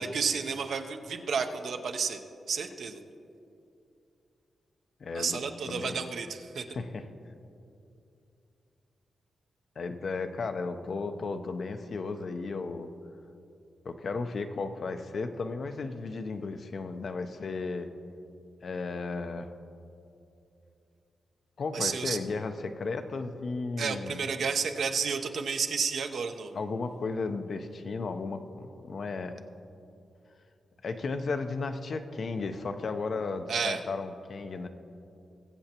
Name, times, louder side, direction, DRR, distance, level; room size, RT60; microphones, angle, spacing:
voice 1, 0.0-2.2 2.5-3.0 5.1-6.7 21.7-22.2 23.8-26.6 33.5-33.8, right 5 dB, 70° right, 6 dB, 0.7 m, -31 dB
voice 2, 5.0-6.0 6.7-7.0 9.8-12.9 13.8-17.9 18.6-19.5 21.6-24.2 26.5-29.4 30.8-34.7, left 4 dB, 60° left, 7 dB, 0.6 m, -34 dB
21.0 x 8.0 x 2.9 m, 2.7 s
cardioid pair, 90°, 0 cm